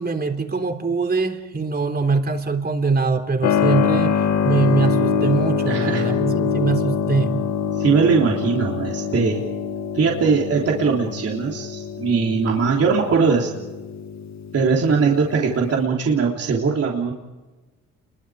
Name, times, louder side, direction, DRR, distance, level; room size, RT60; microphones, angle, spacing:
voice 1, 0.0-4.2 4.4-7.4, right 4 dB, 30° right, 6 dB, 3.6 m, -22 dB
Keyboard (musical), 3.4-15.8, left 7 dB, 65° left, 1.9 m, -25 dB
voice 2, 5.7-6.1 7.8-9.4 9.9-13.5 14.5-17.1, right 5 dB, 50° right, -1 dB, 3.5 m, -20 dB
30.0 x 22.5 x 5.0 m, 1.2 s
cardioid pair, 90°, 30 cm